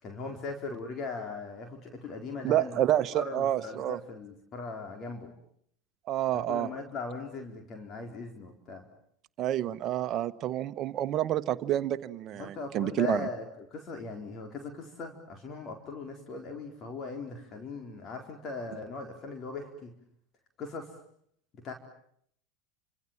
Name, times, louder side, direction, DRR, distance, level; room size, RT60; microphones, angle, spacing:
voice 1, 0.0-2.8 3.1-5.3 6.3-8.9 12.3-19.9 20.6-20.9 21.5-21.7, left 4 dB, 40° left, 4 dB, 4.4 m, -39 dB
voice 2, 2.4-4.0 6.1-6.7 9.4-13.2, right 12 dB, 45° right, 13 dB, 1.3 m, -28 dB
29.5 x 26.5 x 7.4 m, 0.69 s
hypercardioid pair, 85°, 0 cm